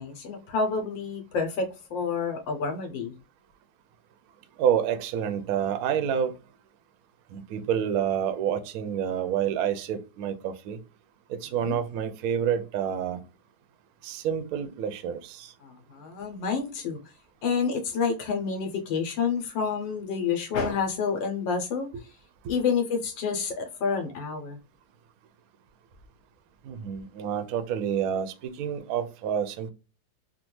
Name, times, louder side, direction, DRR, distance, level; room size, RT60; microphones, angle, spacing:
voice 1, 0.0-3.1 11.6-11.8 15.6-17.0 17.4-21.9 22.5-24.6, left 5 dB, 80° left, 1.4 m, -29 dB
voice 2, 4.6-6.3 7.3-10.8 11.4-13.2 14.0-15.5 22.4-22.5 26.6-29.7, right 8 dB, 75° right, 0.8 m, -28 dB
3.5 x 2.2 x 3.0 m
omnidirectional pair, 2.0 m